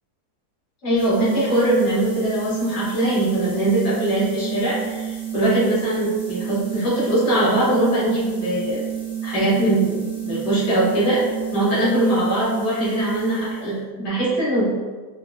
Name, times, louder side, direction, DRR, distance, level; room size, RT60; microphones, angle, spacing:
voice 1, 0.8-8.8 9.2-11.2 11.5-14.7, right 1 dB, 85° left, -9 dB, 2.0 m, -21 dB
sound 1, 0.9-13.8, right 10 dB, 15° left, 0.7 m, -30 dB
4.5 x 2.3 x 2.3 m, 1.4 s
omnidirectional pair, 1.7 m